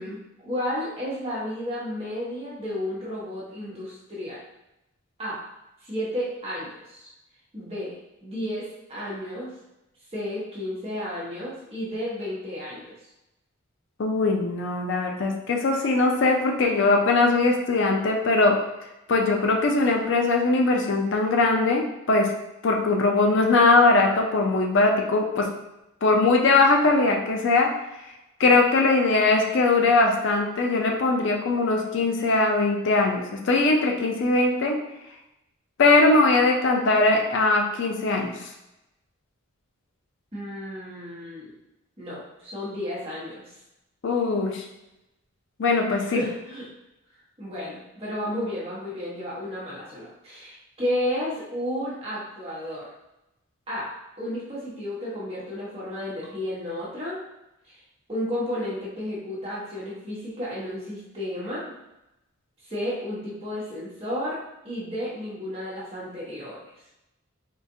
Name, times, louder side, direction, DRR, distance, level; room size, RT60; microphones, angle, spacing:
voice 1, 0.0-4.4 5.2-5.4 5.8-7.1 7.5-9.5 10.1-12.8 40.3-41.5 42.0-43.4 46.1-46.7 47.4-52.9 53.7-57.2 57.7-57.8 58.1-61.7 62.6-66.6, left 1 dB, 30° right, -7 dB, 1.0 m, -32 dB
voice 2, 14.0-18.6 19.1-22.3 22.6-25.5 26.0-27.7 28.4-34.8 35.8-38.3 44.0-44.6 45.6-46.2, left 3 dB, 55° left, 1 dB, 0.4 m, -21 dB
3.7 x 2.4 x 2.7 m, 0.91 s
head